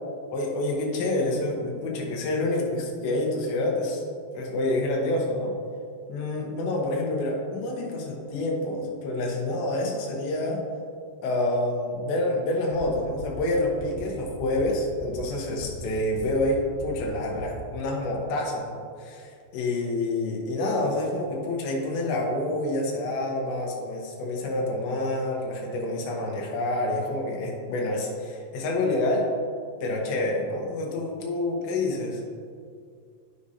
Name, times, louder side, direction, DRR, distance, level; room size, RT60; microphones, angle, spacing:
voice 1, 0.3-4.0 4.3-5.5 6.1-10.6 11.2-29.3 29.8-32.2, left 1 dB, 90° left, -1 dB, 3.3 m, -28 dB
sound 1, 12.7-12.8 13.1-13.4 13.7-14.0 14.3-14.6 14.9-15.2 15.5-15.8 16.1-16.4 16.7-17.0 17.3-17.6, left 3 dB, 70° left, 2.8 m, -42 dB
13.0 x 4.9 x 2.7 m, 2.2 s
omnidirectional pair, 4.8 m